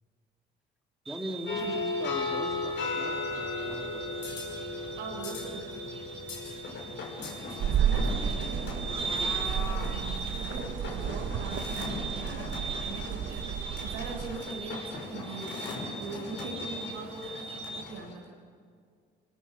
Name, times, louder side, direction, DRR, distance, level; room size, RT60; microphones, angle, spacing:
sound 1, 1.0-17.8, right 4 dB, 30° right, 5.1 m, -40 dB
voice 1, 1.1-4.1 7.9-8.0 9.0-9.2, equal, ahead, 2 dB, 2.8 m, -40 dB
sound 2, 1.5-18.1, left 3 dB, 60° left, 6.0 m, -37 dB
voice 2, 5.0-5.7 7.6-18.3, right 3 dB, 80° right, -2 dB, 7.0 m, -42 dB
sound 3, 7.6-14.4, right 8 dB, 65° right, 1.4 m, -32 dB
26.5 x 18.0 x 6.2 m, 2.1 s
hypercardioid pair, 55°, 21 cm